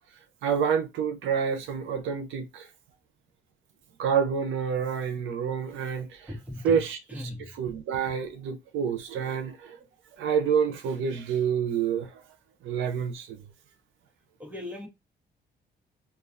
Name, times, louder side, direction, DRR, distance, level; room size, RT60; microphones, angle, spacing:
voice 1, 0.4-2.7 4.0-6.3 6.6-7.0 7.5-9.8 10.1-12.2 12.6-13.4, right 7 dB, 80° right, 0.6 m, -28 dB
voice 2, 6.3-6.8 7.1-7.5 14.4-14.9, left 1 dB, 10° right, 1.0 m, -38 dB
2.3 x 2.3 x 2.4 m
cardioid pair, 90°, 20 cm